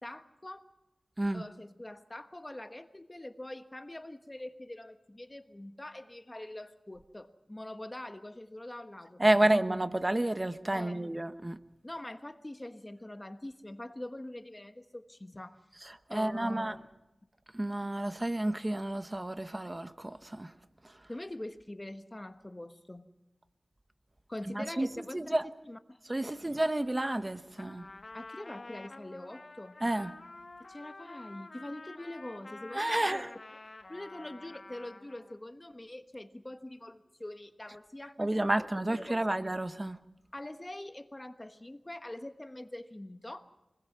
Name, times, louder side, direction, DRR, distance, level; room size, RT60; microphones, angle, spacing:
voice 1, 0.0-0.7 1.3-9.6 10.7-11.0 11.8-15.6 16.1-16.9 21.1-23.0 24.3-26.0 28.1-29.7 30.7-33.2 33.9-39.4 40.3-43.4, left 1 dB, 20° left, 1.3 m, -44 dB
voice 2, 9.2-11.6 15.8-16.8 17.5-20.5 20.8-20.9 24.5-25.5 26.1-27.9 29.8-30.1 32.7-33.3 38.2-40.0, right 1 dB, 25° right, 1.0 m, -30 dB
Trumpet, 27.5-35.4, left 2 dB, 50° left, 1.4 m, -49 dB
25.5 x 20.5 x 6.1 m
wide cardioid pair, 90°, 0 cm